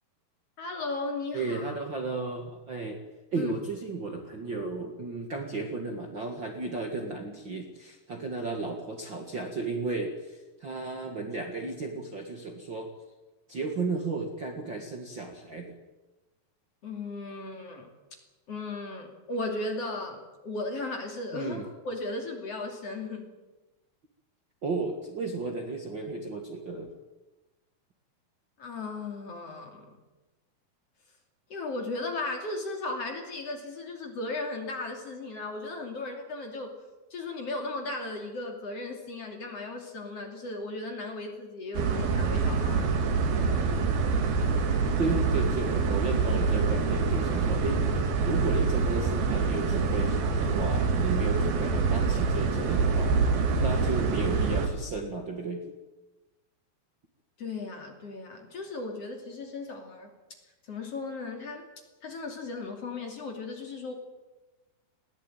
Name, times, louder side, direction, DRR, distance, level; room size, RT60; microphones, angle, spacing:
voice 1, 0.6-1.6 3.4-3.5 16.8-17.9 18.5-21.6 21.9-23.3 28.6-30.0 31.5-36.7 37.1-42.9 57.4-60.1 60.6-61.7 62.0-63.9, left 2 dB, 45° left, 3 dB, 3.5 m, -36 dB
voice 2, 1.3-3.0 3.3-12.9 13.5-15.8 21.3-21.6 24.6-26.9 45.0-53.1 53.6-55.7, right 3 dB, 40° right, 3 dB, 1.9 m, -34 dB
sound 1, 41.7-54.7, right 4 dB, 80° right, 4.1 m, -26 dB
20.5 x 16.5 x 9.1 m, 1.1 s
omnidirectional pair, 4.3 m